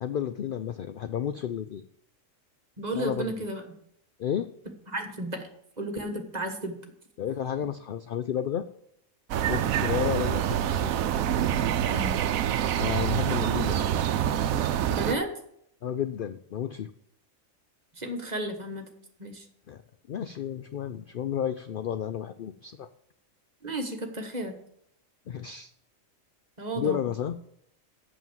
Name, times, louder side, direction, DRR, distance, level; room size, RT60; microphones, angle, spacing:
voice 1, 0.0-1.8 2.9-3.3 4.2-4.5 7.2-8.6 9.5-10.9 12.8-13.9 15.8-16.9 19.7-19.8 20.1-22.9 25.3-25.7 26.7-27.4, left 9 dB, 65° left, 11 dB, 0.5 m, -31 dB
voice 2, 2.8-3.6 4.9-5.5 5.8-6.8 11.9-12.3 14.9-15.3 17.9-18.9 19.2-19.4 23.6-24.5 26.6-27.1, right 1 dB, 30° right, 5 dB, 1.4 m, -33 dB
sound 1, 9.3-15.1, right 10 dB, 85° right, 1.1 m, -26 dB
8.4 x 7.2 x 7.3 m, 0.73 s
omnidirectional pair, 1.4 m